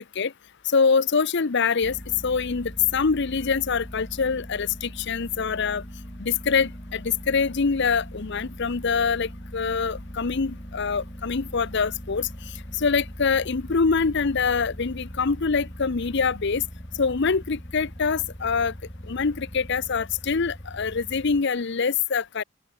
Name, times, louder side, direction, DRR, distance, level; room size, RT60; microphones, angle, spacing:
voice 1, 0.7-5.8 6.2-12.3 12.8-16.6 17.0-18.7 19.1-22.4, left 5 dB, 55° left, 0.7 m, -24 dB
sound 1, 1.8-21.4, equal, 25° left, 4.7 m, -40 dB
open air
head